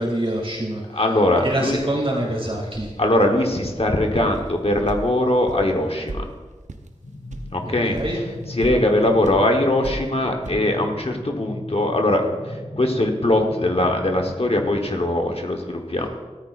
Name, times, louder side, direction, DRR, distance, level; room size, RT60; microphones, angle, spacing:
voice 1, 0.0-0.8 1.4-2.9 7.6-8.2, right 1 dB, 55° right, -4 dB, 2.6 m, -25 dB
voice 2, 0.9-1.8 3.0-6.2 7.5-8.2 8.5-16.1, left 1 dB, 55° left, 2 dB, 1.1 m, -21 dB
sound 1, 4.3-4.5 4.9-5.0 5.5-5.7 6.1-6.2 6.7-6.9 7.3-7.5 7.9-8.1 8.4-8.7 9.2-9.4 9.8-10.1 10.4-10.5, right 2 dB, 85° right, 0.8 m, -33 dB
sound 2, 7.0-14.7, left 1 dB, 85° left, 1.5 m, -37 dB
14.0 x 13.5 x 2.5 m, 1.3 s
wide cardioid pair, 50°, 12 cm